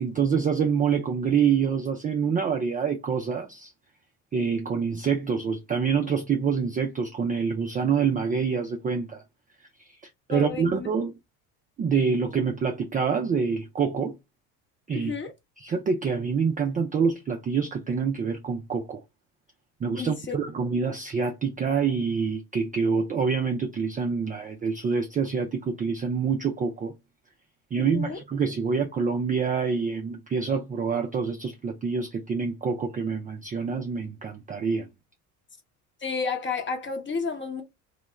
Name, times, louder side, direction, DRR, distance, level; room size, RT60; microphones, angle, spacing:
voice 1, 0.0-3.7 4.3-9.2 10.3-11.1 11.8-14.1 14.9-15.1 15.6-19.0 19.8-26.9 27.7-34.9, right 6 dB, 20° right, 0.3 m, -26 dB
voice 2, 10.3-10.9 14.9-15.3 20.0-20.4 27.8-28.2 36.0-37.6, left 5 dB, 25° left, 0.9 m, -31 dB
2.3 x 2.0 x 3.1 m
hypercardioid pair, 65°, 45 cm